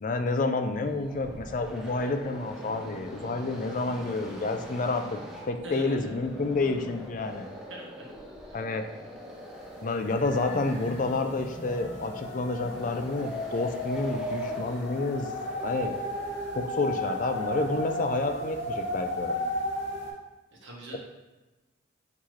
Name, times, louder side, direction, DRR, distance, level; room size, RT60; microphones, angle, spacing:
voice 1, 0.0-5.2 5.4-7.5 8.5-8.9 9.8-15.3 15.6-16.0 16.5-19.6, left 3 dB, 40° left, 7 dB, 0.3 m, -29 dB
sound 1, 0.8-16.8, equal, 5° right, 0.6 m, -43 dB
voice 2, 5.6-6.1 7.7-8.0 8.5-8.6 20.5-21.0, right 1 dB, 75° right, -2 dB, 1.2 m, -42 dB
sound 2, 9.5-9.6 9.9-20.1, left 1 dB, 65° left, 1.0 m, -34 dB
5.8 x 2.9 x 3.1 m, 1.1 s
head